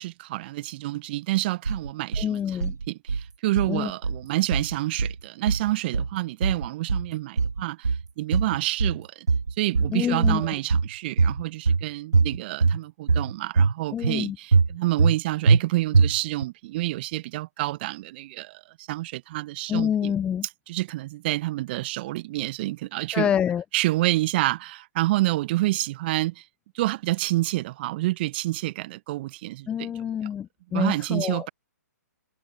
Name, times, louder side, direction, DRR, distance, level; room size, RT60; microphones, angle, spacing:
voice 1, 0.0-2.6 2.9-9.3 9.6-20.1 20.7-23.3 23.7-26.4 26.7-29.9 30.7-31.5, right 18 dB, 35° right, 0.8 m, -28 dB
sound 1, 1.7-2.3 2.6-3.3 3.6-4.3 4.5-5.2 5.5-6.2 6.4-7.1 7.4-8.1 8.3-9.0 9.3-10.0 10.2-10.9 11.2-11.8 12.1-12.8 13.1-13.7 14.0-14.2 14.5-15.2 15.5-15.6 15.9-16.4, right 4 dB, 85° right, 0.4 m, -22 dB
voice 2, 2.2-2.7 3.7-3.9 9.9-10.5 13.9-14.4 19.7-20.5 23.1-23.6 29.7-31.5, left 9 dB, 10° left, 0.4 m, -27 dB
figure-of-eight pair, 125°, 9 cm